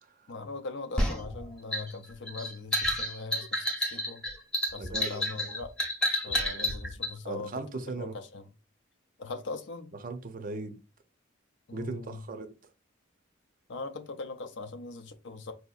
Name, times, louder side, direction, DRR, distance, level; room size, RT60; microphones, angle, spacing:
voice 1, 0.3-4.2 4.7-5.7 6.2-7.6 8.0-8.5 9.2-9.9 11.7-12.2 13.7-15.5, left 3 dB, 65° left, 0.5 m, -40 dB
sound 1, 1.0-7.1, left 1 dB, 5° left, 0.8 m, -30 dB
voice 2, 4.8-5.3 6.3-6.7 7.2-8.2 10.0-10.8 11.7-12.5, right 3 dB, 45° right, 0.5 m, -38 dB
4.7 x 2.8 x 2.3 m
head